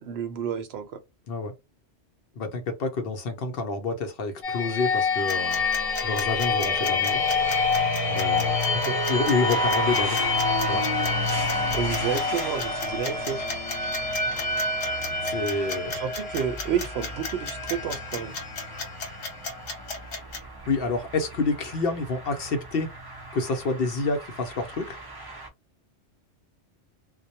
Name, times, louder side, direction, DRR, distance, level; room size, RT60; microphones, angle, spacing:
voice 1, 0.0-1.0 8.8-9.0 11.7-13.4 16.0-18.3, right 8 dB, 70° right, 0.8 m, -30 dB
voice 2, 2.4-5.6 6.0-7.2 8.1-8.7 9.1-10.2 10.6-10.8 15.3-15.9 20.7-22.9 23.3-25.0, left 3 dB, 60° left, 0.7 m, -28 dB
sound 1, 4.4-20.1, left 3 dB, 35° left, 0.9 m, -27 dB
sound 2, 5.3-20.4, left 3 dB, 80° left, 1.1 m, -35 dB
sound 3, 6.9-25.5, right 2 dB, 30° right, 0.4 m, -38 dB
2.2 x 2.0 x 2.7 m
omnidirectional pair, 1.2 m